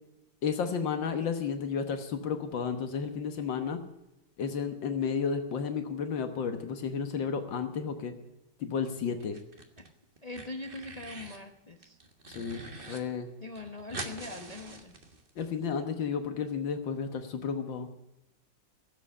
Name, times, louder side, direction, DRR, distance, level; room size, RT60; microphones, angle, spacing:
voice 1, 0.4-3.8 4.4-8.1 8.6-9.4 12.3-13.3 15.4-17.9, left 6 dB, 80° left, 7 dB, 1.9 m, -32 dB
sound 1, 9.2-9.9 10.2-11.4 11.8-13.0 13.3-13.4 13.6-15.5, right 2 dB, 30° right, 1.5 m, -44 dB
voice 2, 10.2-12.0 13.4-15.0, left 2 dB, 25° left, 5 dB, 0.9 m, -42 dB
16.5 x 7.8 x 8.3 m, 0.90 s
omnidirectional pair, 2.0 m